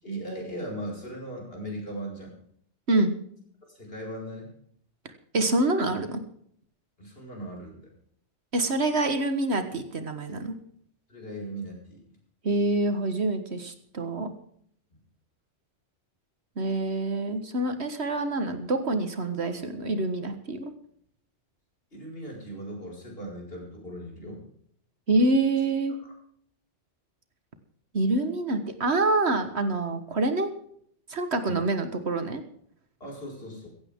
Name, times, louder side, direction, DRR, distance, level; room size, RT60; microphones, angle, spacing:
voice 1, 0.0-2.3 3.7-4.5 7.0-7.9 11.1-12.0 21.9-24.4 31.4-31.7 33.0-33.7, right 1 dB, 55° left, -1 dB, 5.9 m, -38 dB
voice 2, 5.3-6.2 8.5-10.6 12.4-14.3 16.6-20.7 25.1-26.0 27.9-30.5 31.1-32.4, right 2 dB, 65° right, 8 dB, 1.8 m, -26 dB
16.0 x 16.0 x 3.7 m, 0.65 s
omnidirectional pair, 1.2 m